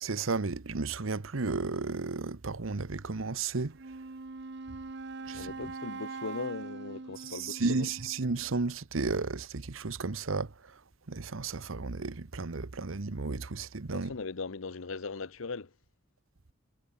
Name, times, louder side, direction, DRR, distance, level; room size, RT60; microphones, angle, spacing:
voice 1, 0.0-3.8 5.3-5.5 7.3-10.8 11.1-14.1, right 3 dB, 85° right, 1.0 m, -33 dB
Wind instrument woodwind instrument, 3.7-8.6, right 3 dB, 60° right, 0.9 m, -43 dB
voice 2, 5.2-7.9 13.9-15.8, left 4 dB, 85° left, 0.9 m, -39 dB
head